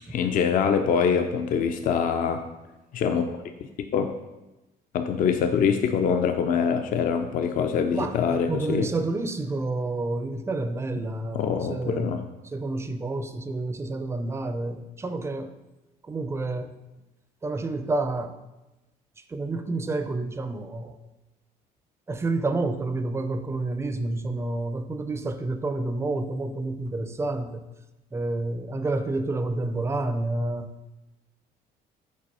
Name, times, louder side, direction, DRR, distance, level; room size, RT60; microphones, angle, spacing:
voice 1, 0.1-2.4 2.9-3.3 3.6-4.1 4.9-8.9 11.3-12.2, left 7 dB, 55° left, 6 dB, 0.5 m, -24 dB
voice 2, 7.9-12.1 12.5-15.5 16.1-16.8 17.4-18.4 19.3-21.0 22.1-27.6 28.1-31.0, right 2 dB, 15° right, 9 dB, 0.5 m, -29 dB
5.3 x 4.0 x 5.4 m, 1.0 s
cardioid pair, 110°, 17 cm